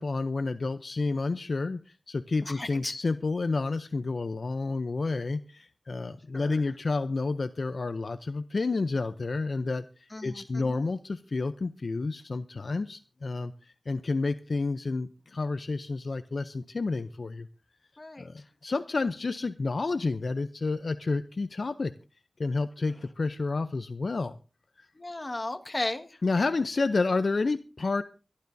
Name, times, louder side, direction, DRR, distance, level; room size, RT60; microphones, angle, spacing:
voice 1, 0.0-17.5 18.2-21.9 22.4-24.4 24.8-24.9 26.2-28.0, left 3 dB, 70° left, 0.6 m, -30 dB
voice 2, 2.5-2.9 6.3-6.6 10.1-10.4 10.7-10.8 18.0-18.3 25.0-26.1, left 2 dB, 40° left, 1.6 m, -35 dB
24.0 x 11.5 x 2.7 m
cardioid pair, 45°, 0 cm